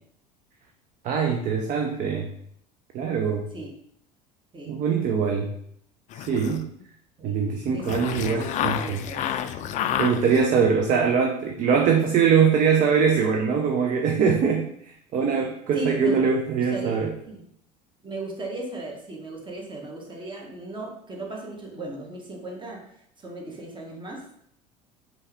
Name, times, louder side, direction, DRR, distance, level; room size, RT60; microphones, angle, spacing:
voice 1, 1.0-2.3 2.9-3.5 4.7-5.5 6.2-6.7 7.2-9.0 10.0-14.7 15.1-17.1, right 6 dB, 40° right, 3 dB, 0.6 m, -22 dB
sound 1, 6.1-6.8 7.8-10.6, left 10 dB, 35° left, 0.4 m, -29 dB
voice 2, 7.7-8.4 8.7-9.3 15.7-16.2 16.6-17.4 18.0-22.8 23.2-24.4, right 2 dB, 25° right, 0 dB, 1.3 m, -36 dB
5.3 x 2.8 x 3.4 m, 0.69 s
figure-of-eight pair, 70°, 21 cm